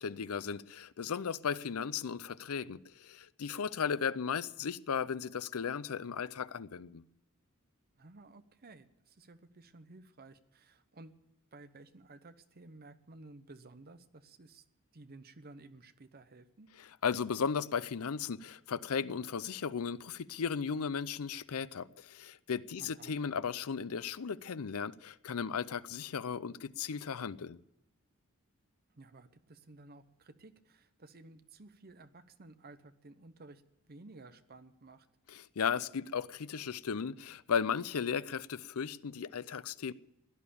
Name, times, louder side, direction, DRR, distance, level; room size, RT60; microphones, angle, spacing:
voice 1, 0.0-7.0 17.0-27.6 35.3-39.9, left 6 dB, 75° left, 0.5 m, -36 dB
voice 2, 8.0-11.2 11.5-14.6 14.9-16.7 22.8-23.2 28.9-33.6 33.9-35.1, right 2 dB, 45° right, 0.9 m, -55 dB
17.0 x 11.0 x 7.0 m
head